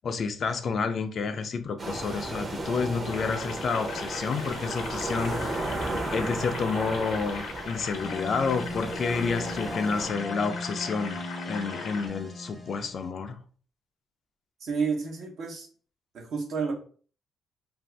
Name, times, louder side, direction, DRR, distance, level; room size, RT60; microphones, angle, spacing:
voice 1, 0.0-5.6 6.1-13.4, left 5 dB, 55° left, 0.4 m, -30 dB
sound 1, 1.8-10.1, right 2 dB, 30° right, 0.7 m, -34 dB
sound 2, 3.1-12.1, left 5 dB, 85° left, 0.8 m, -39 dB
sound 3, 7.9-13.1, left 1 dB, 5° left, 0.6 m, -38 dB
voice 2, 14.6-15.7 16.1-16.7, right 5 dB, 65° right, 0.9 m, -30 dB
2.6 x 2.4 x 3.2 m
cardioid pair, 90°, 0 cm